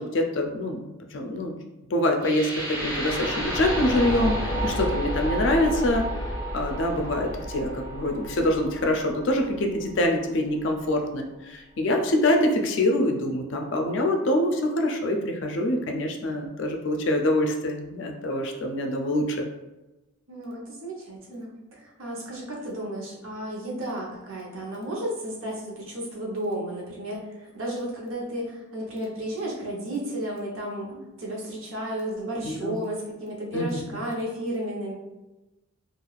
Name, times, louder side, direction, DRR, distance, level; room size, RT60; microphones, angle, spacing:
voice 1, 0.0-1.5 1.9-6.0 6.5-19.4 32.4-32.8 33.5-33.7, left 1 dB, 55° left, 3 dB, 0.4 m, -25 dB
sound 1, 2.2-10.2, equal, 35° right, 1.3 m, -31 dB
voice 2, 4.5-5.0 20.3-34.9, right 1 dB, 70° right, -3 dB, 0.8 m, -33 dB
3.2 x 2.4 x 2.3 m, 1.1 s
head